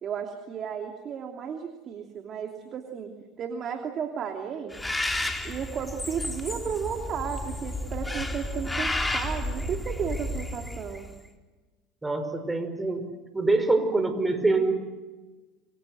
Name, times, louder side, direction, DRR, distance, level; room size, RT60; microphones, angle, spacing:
voice 1, 0.0-4.8 5.4-11.1, right 7 dB, 45° right, 4 dB, 2.9 m, -34 dB
Bird, 4.7-11.1, left 1 dB, 10° left, 3.7 m, -32 dB
voice 2, 12.0-14.8, right 3 dB, 15° right, 9 dB, 5.3 m, -25 dB
27.5 x 24.0 x 7.9 m, 1.3 s
hypercardioid pair, 80°, 0 cm